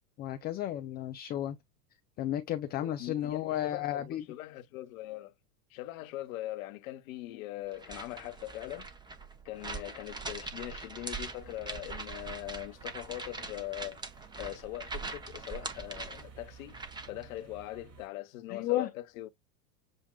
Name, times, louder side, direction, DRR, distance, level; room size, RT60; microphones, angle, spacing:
voice 1, 0.2-1.6 2.2-4.2 18.5-18.9, left 12 dB, 20° left, 0.4 m, -33 dB
voice 2, 2.8-5.3 5.7-8.9 9.4-14.0 14.4-16.8 17.1-19.3, left 16 dB, 60° left, 0.9 m, -41 dB
sound 1, 7.7-17.2, right 3 dB, 10° right, 0.8 m, -42 dB
sound 2, 11.3-18.1, right 8 dB, 30° right, 1.5 m, -55 dB
7.5 x 2.6 x 2.2 m
hypercardioid pair, 95°, 48 cm